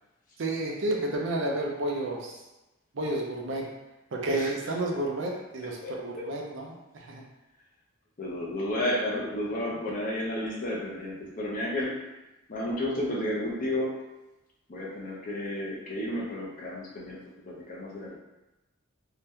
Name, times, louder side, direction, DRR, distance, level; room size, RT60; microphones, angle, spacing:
voice 1, 0.4-2.3 2.9-3.7 4.1-6.7 6.9-7.2, right 1 dB, 60° right, -1 dB, 0.5 m, -31 dB
voice 2, 5.8-6.3 8.2-12.0 12.5-14.0 14.7-17.2 17.4-18.2, left 1 dB, 40° left, -3 dB, 0.5 m, -32 dB
2.7 x 2.2 x 3.4 m, 1.0 s
head